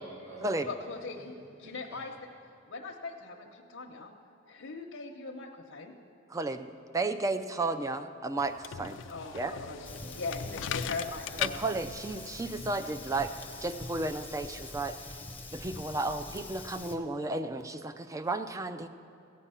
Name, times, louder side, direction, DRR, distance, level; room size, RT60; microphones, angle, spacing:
voice 1, 0.0-0.7 1.6-2.0 9.1-10.9, right 1 dB, 65° right, -8 dB, 2.2 m, -48 dB
voice 2, 0.7-1.3 1.6-2.1 2.7-4.1 4.5-5.9 9.1-9.9 10.2-10.4 10.7-11.6, left 3 dB, 90° left, -1 dB, 0.9 m, -40 dB
voice 3, 6.3-9.0 9.3-9.5 11.4-13.3 13.6-15.0 15.5-18.9, right 2 dB, 15° right, 9 dB, 0.4 m, -33 dB
sound 1, 8.4-13.9, left 9 dB, 65° left, 0.4 m, -40 dB
Fire, 9.8-17.0, left 2 dB, 10° left, 0.8 m, -44 dB
15.5 x 8.5 x 5.6 m, 2.6 s
head